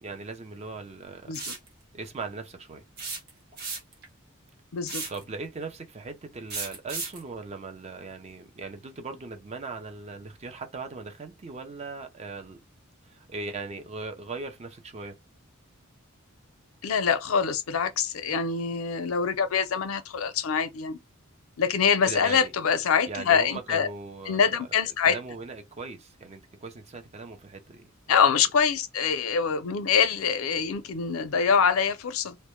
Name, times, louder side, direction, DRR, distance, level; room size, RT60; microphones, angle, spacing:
voice 1, 0.0-1.3 1.9-2.8 5.1-12.6 13.0-15.2 22.0-22.5 23.1-24.7 25.0-28.3, right 3 dB, 30° right, 0.4 m, -39 dB
sound 1, 1.3-1.7 3.0-4.0 4.9-5.2 6.5-7.2, right 4 dB, 50° right, 0.8 m, -34 dB
voice 2, 4.7-5.0 16.8-21.0 21.6-23.9 24.3-25.2 28.1-32.4, left 6 dB, 85° left, 0.5 m, -24 dB
2.1 x 2.1 x 2.9 m
head